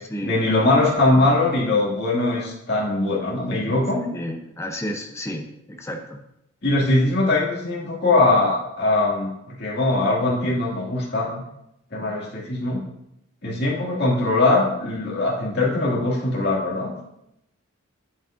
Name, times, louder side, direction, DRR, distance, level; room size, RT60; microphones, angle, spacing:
voice 1, 0.2-4.0 6.6-11.3 11.9-12.8 13.4-16.9, left 2 dB, 50° left, -4 dB, 2.2 m, -21 dB
voice 2, 4.1-6.2, equal, 15° left, 4 dB, 0.7 m, -32 dB
8.5 x 7.2 x 2.6 m, 0.81 s
head